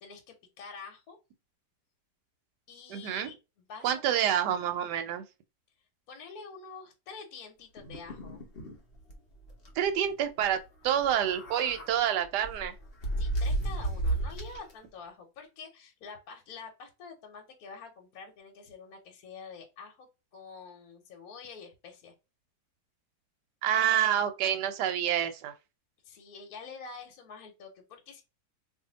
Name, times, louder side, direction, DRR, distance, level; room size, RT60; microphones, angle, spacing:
voice 1, 0.0-1.2 2.7-3.3 3.7-4.3 6.1-8.5 13.2-22.1 26.0-28.2, left 5 dB, 60° left, 1.3 m, -47 dB
voice 2, 2.9-3.3 3.8-5.2 9.8-10.6 10.8-12.7 23.6-25.5, right 10 dB, 70° right, 1.2 m, -28 dB
sound 1, 7.8-8.8 9.1-9.2 9.5-9.7 10.9-11.9 12.4-14.7, right 2 dB, 45° left, 0.8 m, -33 dB
2.7 x 2.6 x 3.8 m
omnidirectional pair, 2.0 m